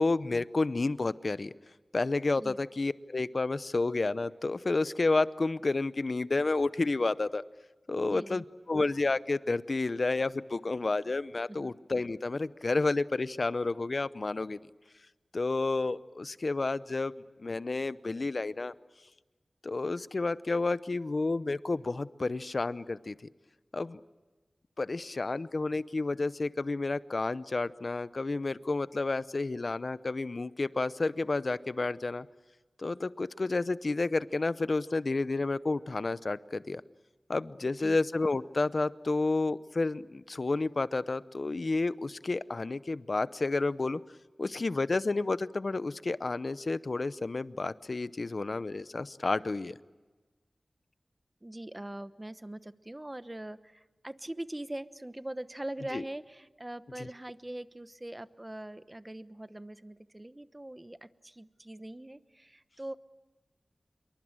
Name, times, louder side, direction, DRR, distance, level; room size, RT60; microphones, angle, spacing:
voice 1, 0.0-1.5 1.9-7.4 7.9-14.6 15.3-17.1 17.4-18.7 19.6-23.1 23.7-24.0 24.8-32.3 32.8-36.8 37.3-44.0 44.4-49.7 55.9-56.0 57.0-57.1, left 3 dB, 60° left, 16 dB, 0.7 m, -30 dB
voice 2, 8.0-8.4 11.5-11.7 37.8-38.0 51.4-62.9, right 1 dB, 20° right, 13 dB, 1.0 m, -42 dB
26.0 x 23.0 x 8.9 m, 1.2 s
wide cardioid pair, 55°, 0 cm